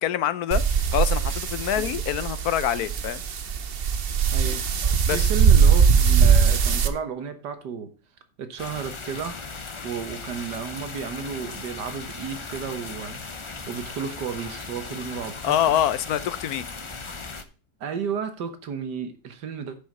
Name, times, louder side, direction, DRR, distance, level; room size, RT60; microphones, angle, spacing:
voice 1, 0.0-3.2 5.1-5.3 15.4-16.6, left 11 dB, 70° left, 1.1 m, -25 dB
sound 1, 0.5-6.9, right 6 dB, 50° right, 0.8 m, -20 dB
voice 2, 4.3-4.6 5.1-7.9 8.4-9.4 9.8-13.2 13.7-15.8 17.8-19.8, right 6 dB, 80° right, 1.8 m, -33 dB
sound 2, 8.6-17.4, left 4 dB, 40° left, 0.4 m, -37 dB
10.0 x 5.7 x 5.3 m
omnidirectional pair, 1.8 m